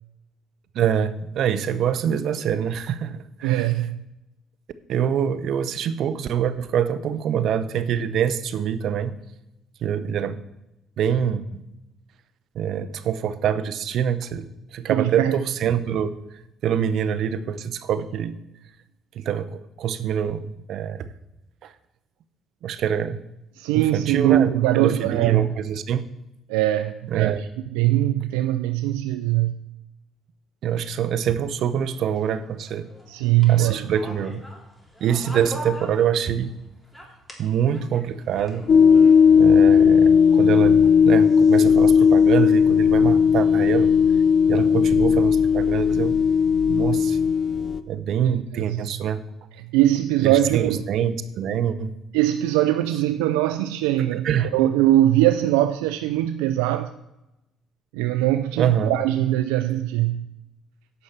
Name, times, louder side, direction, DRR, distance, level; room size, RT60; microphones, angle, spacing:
voice 1, 0.7-3.7 4.9-9.2 9.8-10.4 11.0-11.4 12.5-16.2 16.6-18.4 19.1-21.1 21.6-21.7 22.6-23.2 23.7-26.1 27.1-27.4 30.6-32.9 33.5-34.4 35.0-36.5 37.4-38.6 39.4-43.9 44.5-46.1 46.7-47.2 47.9-49.2 50.2-51.9 54.1-54.5 58.6-59.0, right 8 dB, 65° right, 0.7 m, -25 dB
voice 2, 3.4-4.0 14.9-15.4 23.6-25.5 26.5-27.5 27.7-29.6 33.1-33.9 48.2-48.9 49.7-50.8 52.1-56.9 57.9-60.3, right 14 dB, 85° right, 0.4 m, -21 dB
sound 1, 31.5-36.5 36.8-39.7, equal, 5° left, 3.4 m, -42 dB
sound 2, 38.7-47.8, left 6 dB, 55° left, 0.6 m, -16 dB
9.7 x 5.6 x 7.4 m
supercardioid pair, 65°, 0 cm